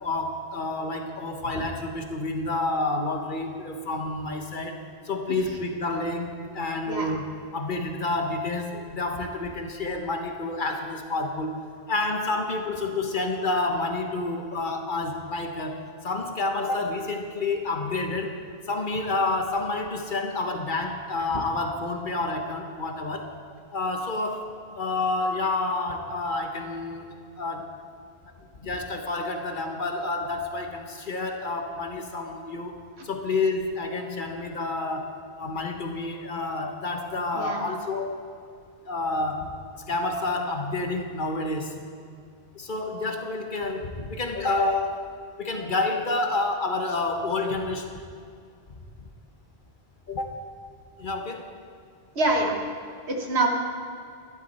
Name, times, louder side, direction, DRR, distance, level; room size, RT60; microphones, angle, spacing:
voice 1, 0.0-7.2 7.5-11.6 11.9-18.4 18.7-23.3 23.7-24.5 24.7-27.7 28.3-32.8 33.0-38.2 38.9-41.8 42.5-45.0 45.4-47.9 50.1-50.4 51.0-51.5, left 2 dB, 50° left, 4 dB, 1.2 m, -29 dB
voice 2, 37.3-37.6 52.1-52.6 53.1-53.5, right 2 dB, 75° right, 1 dB, 1.7 m, -25 dB
13.0 x 11.5 x 4.2 m, 2.3 s
omnidirectional pair, 1.1 m